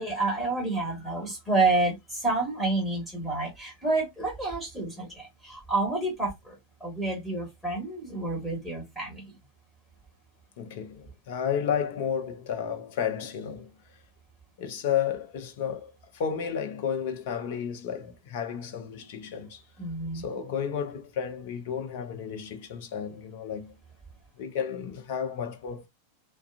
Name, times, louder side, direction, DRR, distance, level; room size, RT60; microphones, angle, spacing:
voice 1, 0.0-6.5 6.8-9.3 19.8-20.3, right 2 dB, ahead, 1.3 m, -29 dB
voice 2, 10.6-13.7 14.6-19.6 20.1-23.7 24.4-25.9, left 8 dB, 50° left, 0.6 m, -32 dB
2.4 x 2.2 x 2.4 m
figure-of-eight pair, 90°, 0 cm